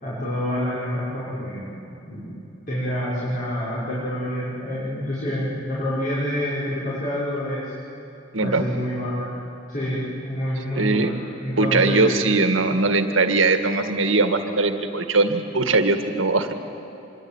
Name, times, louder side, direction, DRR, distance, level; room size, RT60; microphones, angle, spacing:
voice 1, 0.0-1.7 2.1-2.4 2.7-7.7 8.4-9.3 9.7-12.3 14.7-14.8, equal, 45° left, -9 dB, 6.2 m, -27 dB
voice 2, 10.8-11.1 11.6-16.5, right 3 dB, 75° right, 7 dB, 2.0 m, -20 dB
26.0 x 22.5 x 9.0 m, 3.0 s
head